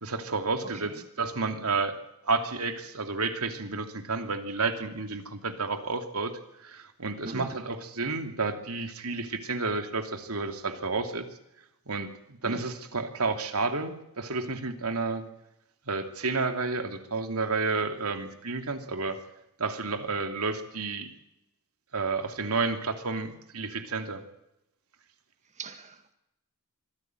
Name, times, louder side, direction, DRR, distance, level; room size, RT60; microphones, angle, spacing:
voice 1, 0.0-2.0 2.2-11.3 11.9-15.3 15.9-19.2 19.6-21.1 21.9-24.2, right 3 dB, 90° right, 6 dB, 2.8 m, -31 dB
voice 2, 25.6-26.1, right 2 dB, 35° right, 8 dB, 1.9 m, -40 dB
25.0 x 14.5 x 9.1 m, 0.87 s
head